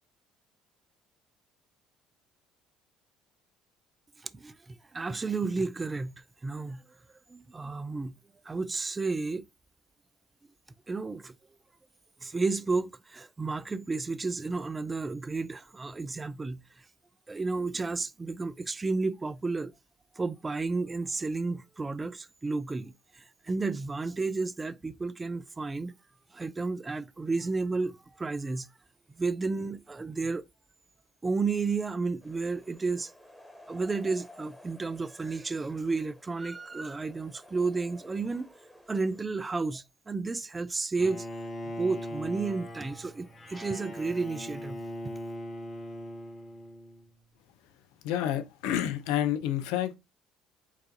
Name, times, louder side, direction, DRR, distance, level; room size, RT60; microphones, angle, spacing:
voice 1, 4.3-6.1 6.4-6.8 7.3-8.1 8.5-9.4 10.9-11.3 12.2-16.6 17.3-19.7 20.2-25.9 26.3-28.7 29.2-30.4 31.2-33.1 33.7-38.5 38.9-41.3 41.8-44.8, right 3 dB, 25° right, 0.3 m, -32 dB
sound 1, 32.2-39.2, left 1 dB, 5° left, 1.3 m, -54 dB
Bowed string instrument, 41.0-47.1, left 1 dB, 35° left, 0.9 m, -40 dB
voice 2, 48.0-50.0, left 11 dB, 75° left, 0.5 m, -29 dB
4.6 x 2.5 x 2.8 m
hypercardioid pair, 60°, 0 cm